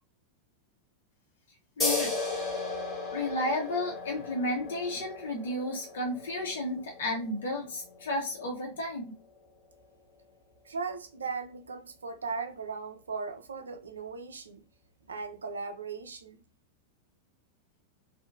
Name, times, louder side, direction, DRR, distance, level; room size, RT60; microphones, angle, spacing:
voice 1, 1.8-2.1 3.1-9.1, left 1 dB, 60° left, 0.7 m, -32 dB
sound 1, 1.8-8.9, left 3 dB, 15° left, 1.1 m, -36 dB
voice 2, 10.7-14.6 15.1-16.4, right 4 dB, 70° right, 0.4 m, -38 dB
2.7 x 2.1 x 2.4 m
figure-of-eight pair, 90°, 0 cm